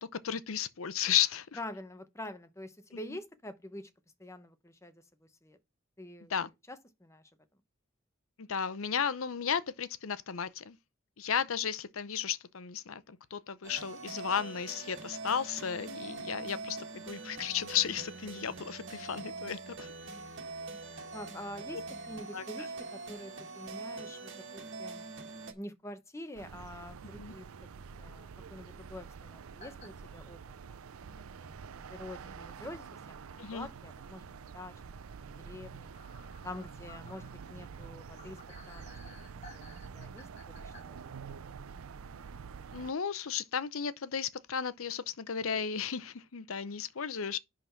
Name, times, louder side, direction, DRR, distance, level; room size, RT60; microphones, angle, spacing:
voice 1, 0.2-1.5 3.1-3.2 6.3-6.5 8.4-10.8 11.2-19.9 22.3-22.4 27.2-27.3 33.4-33.7 42.7-47.4, left 8 dB, 80° left, 0.7 m, -34 dB
voice 2, 1.6-3.9 4.2-4.9 5.4-5.6 6.0-6.3 6.7-7.2 21.1-25.1 25.5-27.5 28.0-30.4 30.7-31.6 31.9-34.2 34.5-35.0 35.4-35.9 36.4-38.4 38.7-39.2 39.5-41.0, left 1 dB, 15° left, 0.9 m, -46 dB
sound 1, 13.6-25.5, right 3 dB, 60° right, 1.8 m, -43 dB
sound 2, 26.4-42.9, right 6 dB, 90° right, 0.5 m, -47 dB
sound 3, 29.6-29.9 30.4-30.5 31.9-32.0 32.6-32.7 33.0-33.1 35.9-40.8, left 3 dB, 35° left, 2.9 m, -55 dB
10.5 x 3.9 x 4.5 m
head